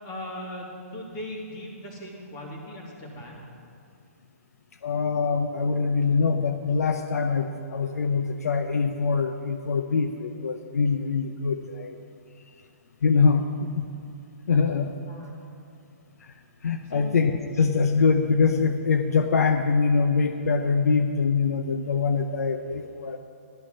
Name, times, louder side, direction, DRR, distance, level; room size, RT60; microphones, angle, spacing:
voice 1, 0.0-3.5 15.1-15.3 16.8-17.1, left 1 dB, 30° left, -3 dB, 3.2 m, -38 dB
voice 2, 4.8-12.0 13.0-13.9 14.5-14.9 16.2-16.3 16.6-23.2, left 5 dB, 80° left, 7 dB, 0.8 m, -24 dB
12.0 x 11.5 x 5.5 m, 2.5 s
hypercardioid pair, 150°, 8 cm